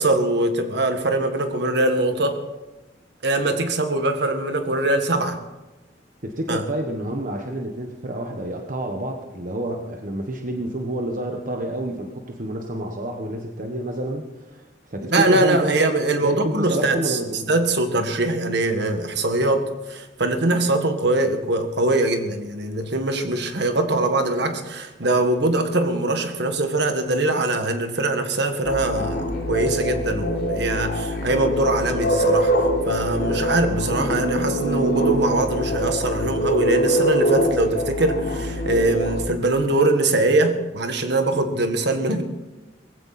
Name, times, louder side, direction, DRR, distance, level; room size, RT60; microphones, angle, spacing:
voice 1, 0.0-2.4 3.2-5.4 6.5-6.6 15.0-17.2 17.5-32.5 32.9-42.2, right 2 dB, 65° right, 7 dB, 1.7 m, -22 dB
voice 2, 6.2-14.6 14.9-15.7 16.2-17.5, right 1 dB, 50° right, 3 dB, 1.2 m, -28 dB
sound 1, 28.6-39.2, equal, 65° left, 3.8 m, -23 dB
19.0 x 15.5 x 4.2 m, 1.1 s
head